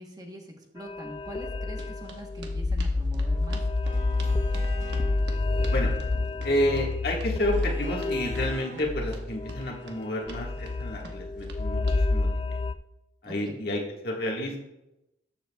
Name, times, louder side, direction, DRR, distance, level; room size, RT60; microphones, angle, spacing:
voice 1, 0.0-3.6 13.3-13.6, equal, 20° right, 2 dB, 1.1 m, -43 dB
sound 1, 0.8-12.7, left 2 dB, 30° left, 0.3 m, -29 dB
sound 2, 1.8-12.0, right 3 dB, 85° right, 1.1 m, -47 dB
sound 3, 3.8-5.1 7.5-8.8, equal, 45° right, 1.2 m, -44 dB
voice 2, 6.4-12.6 13.2-14.6, left 1 dB, 60° left, -1 dB, 1.6 m, -30 dB
13.5 x 7.1 x 2.3 m, 0.92 s
head